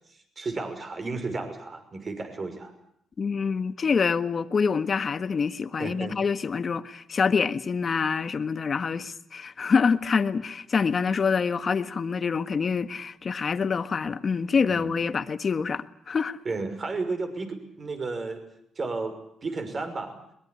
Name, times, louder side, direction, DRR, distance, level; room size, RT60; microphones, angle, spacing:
voice 1, 0.0-2.7 5.8-6.2 14.7-15.0 16.4-18.4 18.8-20.2, right 3 dB, 35° right, 5.9 m, -33 dB
voice 2, 3.2-16.4, left 5 dB, 40° left, 1.5 m, -26 dB
22.5 x 21.0 x 9.8 m
cardioid pair, 90°, 0 cm